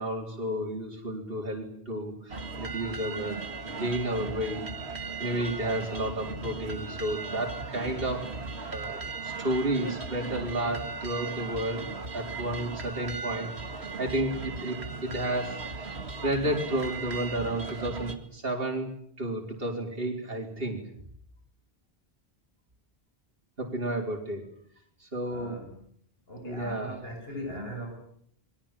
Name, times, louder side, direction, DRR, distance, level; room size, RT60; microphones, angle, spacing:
voice 1, 0.0-3.4 3.6-4.6 5.0-8.3 8.7-11.9 12.1-13.5 14.0-16.0 16.2-18.9 19.2-20.8 23.6-24.4 25.0-25.6 26.4-27.0, right 1 dB, 65° right, 1 dB, 4.5 m, -32 dB
sound 1, 2.3-18.1, right 4 dB, 85° right, 2.5 m, -37 dB
voice 2, 25.3-25.7 26.3-28.0, equal, 70° left, 2 dB, 7.8 m, -39 dB
29.5 x 22.5 x 7.5 m, 0.67 s
omnidirectional pair, 1.1 m